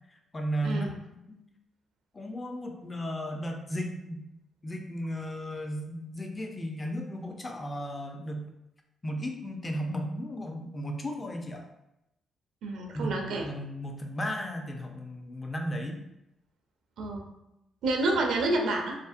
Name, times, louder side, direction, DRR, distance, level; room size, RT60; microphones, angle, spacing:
voice 1, 0.1-0.9 1.3-1.4 2.1-4.2 4.6-8.5 9.0-11.7 12.9-16.0, equal, 25° left, 3 dB, 0.4 m, -35 dB
voice 2, 0.6-1.0 12.6-13.5 17.0-17.3 17.8-19.0, right 2 dB, 70° right, 2 dB, 0.4 m, -28 dB
2.5 x 2.0 x 2.4 m, 0.87 s
supercardioid pair, 55°, 0 cm